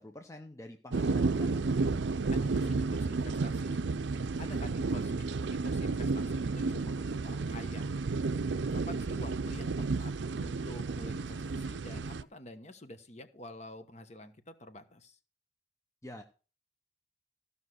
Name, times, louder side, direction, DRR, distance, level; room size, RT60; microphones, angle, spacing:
voice 1, 0.0-1.7 16.0-16.2, left 1 dB, 15° left, 5 dB, 0.7 m, -47 dB
sound 1, 0.9-12.2, right 3 dB, 80° right, 0.5 m, -32 dB
voice 2, 2.3-3.8 4.3-7.9 8.2-8.3 8.7-15.2, left 1 dB, 40° left, 9 dB, 1.1 m, -48 dB
15.0 x 5.6 x 6.3 m, 0.37 s
head